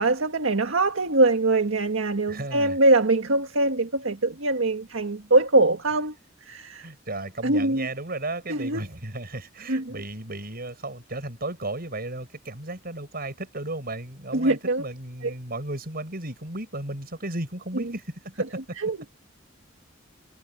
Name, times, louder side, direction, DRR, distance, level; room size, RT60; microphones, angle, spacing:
voice 1, 0.0-6.1 6.4-6.9 7.4-7.9 8.5-8.8 9.7-10.0 14.3-14.8 15.2-15.3 17.7-17.9 18.8-19.0, right 2 dB, 90° right, 1.7 m, -23 dB
voice 2, 2.3-2.8 6.8-18.5, right 2 dB, 50° right, 7.2 m, -34 dB
head